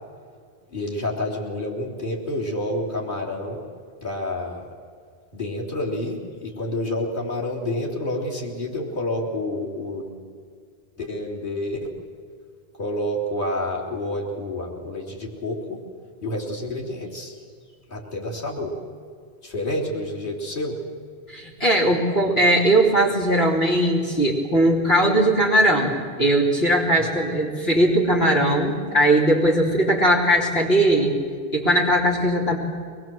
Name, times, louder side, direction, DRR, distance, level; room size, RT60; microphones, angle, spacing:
voice 1, 0.7-3.7 4.0-4.7 5.3-10.2 11.0-11.9 12.8-15.8 16.2-17.3 17.9-18.8 19.4-20.8, left 1 dB, 55° left, -3 dB, 3.6 m, -29 dB
voice 2, 21.3-31.2 31.5-32.6, right 1 dB, 75° left, -3 dB, 3.4 m, -19 dB
24.0 x 21.0 x 7.7 m, 2.1 s
omnidirectional pair, 1.1 m